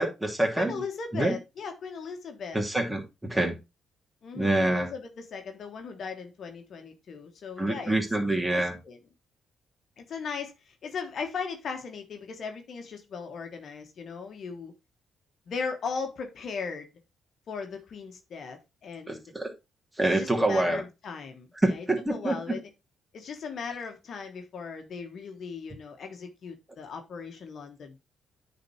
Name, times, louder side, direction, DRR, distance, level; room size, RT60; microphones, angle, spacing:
voice 1, 0.0-0.8 1.1-1.4 2.5-3.6 4.3-4.9 7.6-8.8 19.1-19.5 20.0-20.8 21.6-22.6, right 1 dB, 10° right, 2.9 m, -26 dB
voice 2, 0.6-2.7 4.2-7.9 8.5-9.0 10.0-14.7 15.5-16.9 17.5-19.2 20.1-21.8 22.1-22.6 23.1-28.0, left 5 dB, 60° left, 1.4 m, -38 dB
9.3 x 4.2 x 4.3 m
hypercardioid pair, 45°, 0 cm